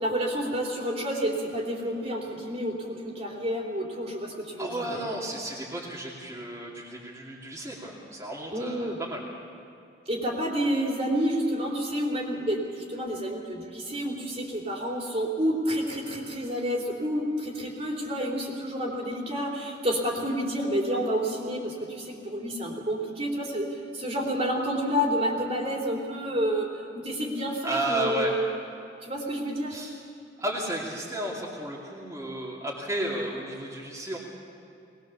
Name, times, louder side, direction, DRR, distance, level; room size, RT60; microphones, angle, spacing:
voice 1, 0.0-5.0 8.5-9.0 10.1-28.5 29.0-29.8, equal, 35° right, -1 dB, 3.5 m, -29 dB
voice 2, 4.6-9.2 27.6-28.3 29.7-29.9 30.4-34.2, right 1 dB, 15° right, -6 dB, 2.8 m, -33 dB
21.0 x 21.0 x 7.1 m, 2.8 s
head